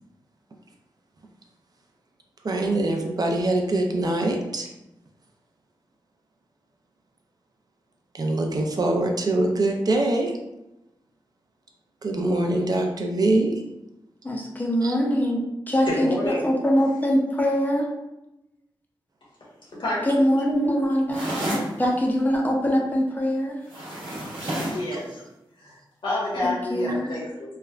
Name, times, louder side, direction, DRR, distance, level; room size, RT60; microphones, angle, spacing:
voice 1, 2.4-4.7 8.1-10.3 12.0-13.5 14.8-14.9, right 2 dB, 50° right, 2 dB, 0.5 m, -23 dB
voice 2, 14.2-17.9 20.1-21.3 21.8-23.6 26.7-27.1, equal, 20° left, -1 dB, 0.6 m, -23 dB
voice 3, 15.9-16.4 19.8-20.1 24.3-25.2 25.6-25.8 26.0-27.6, left 1 dB, 70° left, -6 dB, 1.3 m, -28 dB
sound 1, 21.1-21.7 23.7-24.9, right 1 dB, 90° right, 1.0 m, -29 dB
3.2 x 2.2 x 2.4 m, 0.92 s
cardioid pair, 70°, 9 cm